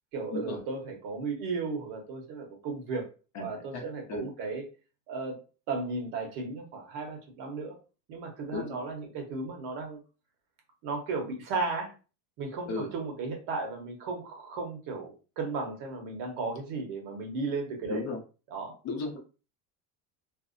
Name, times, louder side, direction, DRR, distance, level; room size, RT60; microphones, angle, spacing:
voice 1, 0.1-3.1 3.4-4.6 5.1-5.4 5.7-7.8 8.1-10.0 10.8-11.9 12.4-18.0 18.5-18.8, right 3 dB, 70° right, 2 dB, 1.0 m, -35 dB
voice 2, 18.8-19.2, left 3 dB, 40° left, 1 dB, 0.7 m, -34 dB
2.6 x 2.1 x 2.5 m, 0.33 s
cardioid pair, 140°, 43 cm